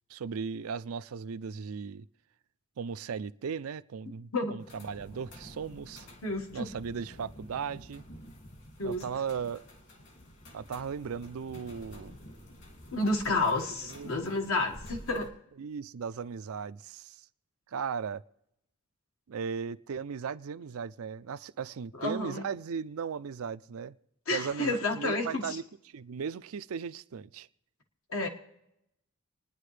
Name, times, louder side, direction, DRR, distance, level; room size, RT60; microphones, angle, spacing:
voice 1, 0.1-2.1 2.8-6.1 6.5-8.0 8.8-9.6 10.5-12.2 13.4-13.5 13.8-14.1 15.6-17.2 17.7-18.2 19.3-24.0 24.3-25.6 25.9-27.5, right 6 dB, 85° right, 0.4 m, -37 dB
sound 1, 4.6-15.3, equal, 55° left, 2.4 m, -50 dB
voice 2, 6.2-6.7 8.8-9.0 12.9-15.3 22.0-22.5 24.3-25.6 28.1-28.3, left 2 dB, 80° left, 1.7 m, -30 dB
29.0 x 10.0 x 3.3 m
head